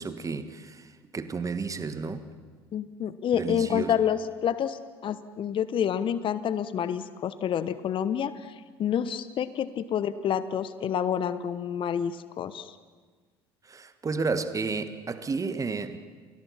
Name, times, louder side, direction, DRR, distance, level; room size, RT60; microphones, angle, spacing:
voice 1, 0.0-2.3 3.3-4.0 13.6-16.0, right 4 dB, 25° right, 1.7 m, -32 dB
voice 2, 2.7-8.5 8.8-12.7, left 9 dB, 40° left, 1.1 m, -28 dB
29.5 x 21.0 x 6.0 m
figure-of-eight pair, 60°, 13 cm